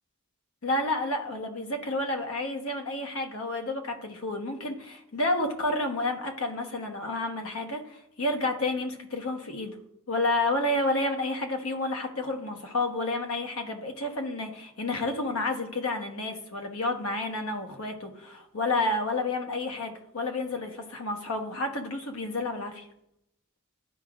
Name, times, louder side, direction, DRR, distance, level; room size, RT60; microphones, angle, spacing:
voice 1, 0.6-9.8 10.1-22.9, left 2 dB, 75° left, 4 dB, 1.1 m, -30 dB
12.0 x 4.8 x 2.4 m, 0.80 s
head